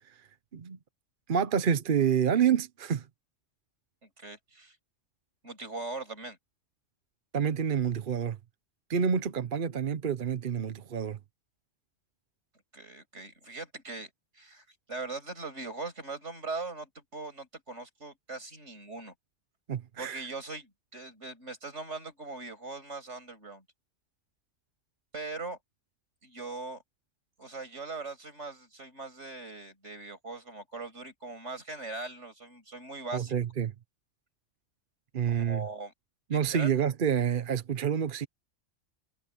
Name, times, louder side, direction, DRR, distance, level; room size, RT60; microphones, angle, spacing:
voice 1, 1.3-3.0 7.3-8.4 8.9-11.2 19.7-20.2 33.1-33.7 35.1-35.7 36.3-38.3, right 7 dB, 50° right, 0.9 m, -28 dB
voice 2, 4.0-4.8 5.4-6.4 12.7-19.1 20.0-23.6 25.1-25.6 26.2-26.8 27.4-33.3 35.3-35.9 36.3-36.7, right 3 dB, 65° right, 6.7 m, -40 dB
omnidirectional pair, 1.3 m